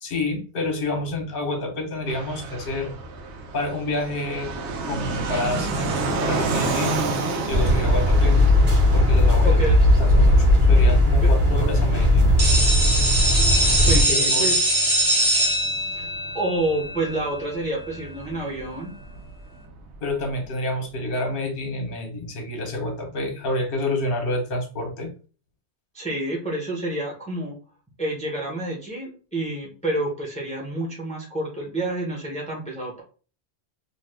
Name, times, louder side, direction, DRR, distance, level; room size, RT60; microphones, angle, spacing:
voice 1, 0.0-2.9 3.5-4.5 4.8-7.0 7.5-8.4 8.9-9.6 10.0-12.3 13.9-14.5 20.0-25.1, left 1 dB, 55° left, 2 dB, 1.0 m, -28 dB
Fixed-wing aircraft airplane, 2.1-20.4, right 3 dB, 80° right, 0.9 m, -32 dB
sound 1, 7.5-14.0, left 1 dB, 50° right, 1.1 m, -17 dB
voice 2, 9.4-9.8 11.2-11.3 13.9-14.6 15.9-16.1 16.3-18.9 25.9-27.6 28.0-33.0, right 2 dB, 5° left, -3 dB, 0.7 m, -28 dB
sound 2, 12.4-18.0, right 1 dB, 30° right, 0.7 m, -22 dB
2.6 x 2.3 x 3.2 m, 0.38 s
omnidirectional pair, 1.1 m